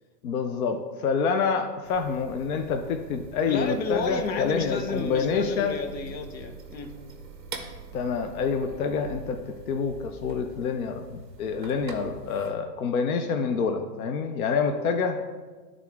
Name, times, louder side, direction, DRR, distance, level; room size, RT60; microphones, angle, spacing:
voice 1, 0.2-5.8 7.9-15.2, left 5 dB, 60° left, 6 dB, 0.5 m, -27 dB
sound 1, 1.8-12.5, right 4 dB, 30° right, 0.6 m, -44 dB
voice 2, 3.5-7.0, left 3 dB, 85° left, 6 dB, 1.1 m, -31 dB
10.5 x 3.6 x 3.5 m, 1.4 s
hypercardioid pair, 175°, 50 cm